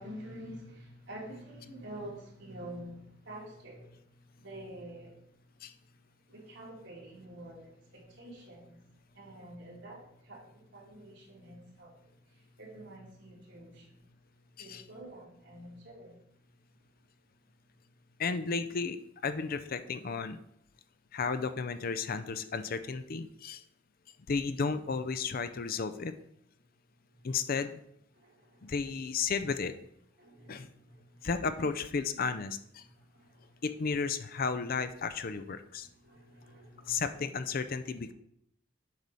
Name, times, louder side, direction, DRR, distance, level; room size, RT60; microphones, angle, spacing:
voice 1, 0.0-5.9 6.3-16.8 27.1-27.3 28.1-28.9 30.2-31.3 32.8-33.6 35.8-37.3, right 1 dB, 65° right, 3.0 m, -49 dB
voice 2, 18.2-19.0 19.2-20.4 21.1-23.6 24.3-26.1 27.2-27.8 28.6-29.7 30.5-30.7 31.2-32.8 33.6-35.9 36.9-38.1, left 5 dB, 50° left, 0.5 m, -33 dB
8.0 x 4.8 x 5.5 m
head